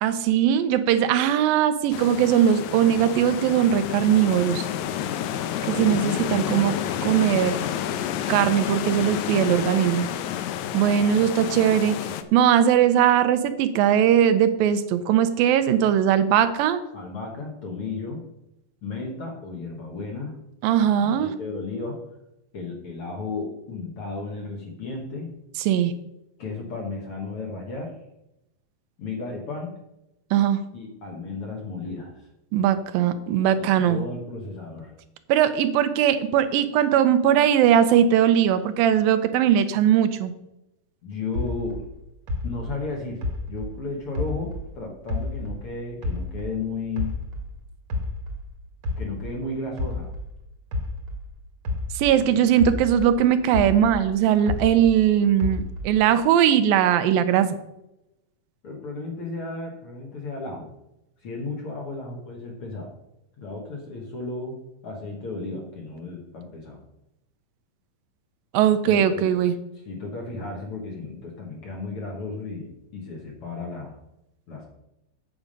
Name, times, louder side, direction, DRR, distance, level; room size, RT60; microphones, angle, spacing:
voice 1, 0.0-4.7 5.7-6.8 7.0-7.6 8.3-10.1 10.7-12.0 12.3-16.8 20.6-21.3 25.7-25.9 30.3-30.6 32.5-34.0 35.3-40.3 51.9-57.6 68.5-69.5, right 9 dB, 90° right, 10 dB, 2.5 m, -20 dB
sound 1, 1.9-12.2, left 10 dB, 85° left, 1.7 m, -29 dB
voice 2, 16.9-18.2 18.8-20.3 21.0-22.0 22.5-25.3 26.4-27.9 29.0-29.8 30.7-32.3 33.6-34.9 41.0-41.9 42.4-43.2 43.5-47.2 49.0-50.1 52.2-52.4 58.6-60.7 61.2-62.9 63.4-66.8 68.8-69.3 69.7-74.0 74.5-74.7, left 3 dB, 55° left, 0 dB, 1.7 m, -34 dB
sound 2, 41.3-44.7 45.1-47.5 47.9-52.2 52.6-55.0 55.4-56.1, left 2 dB, 55° right, 1.7 m, -31 dB
8.7 x 7.1 x 5.2 m, 0.88 s
omnidirectional pair, 4.0 m